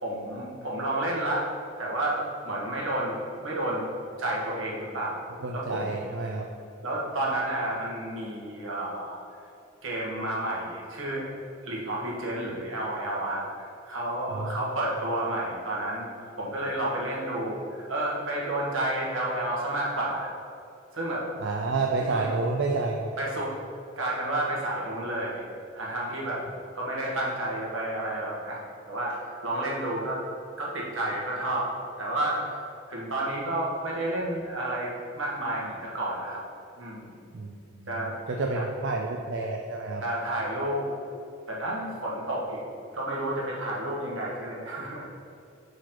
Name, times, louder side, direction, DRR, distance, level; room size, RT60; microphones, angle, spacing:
voice 1, 0.0-1.5 1.8-3.8 4.2-5.1 5.5-6.0 6.8-9.2 9.8-11.3 11.6-13.4 13.8-17.6 17.9-20.3 20.9-21.3 22.0-22.3 23.2-23.6 24.0-25.5 25.7-26.4 26.7-28.6 28.9-30.2 30.6-31.7 32.0-32.5 32.9-36.4 36.8-37.1 37.9-38.1 38.5-38.6 40.0-40.9 41.5-42.6 42.9-45.0, right 1 dB, 80° right, -4 dB, 1.5 m, -30 dB
voice 2, 5.4-6.4 14.3-14.7 21.4-23.1 37.3-40.0, right 3 dB, 60° right, 1 dB, 0.4 m, -30 dB
4.7 x 4.5 x 5.8 m, 2.5 s
head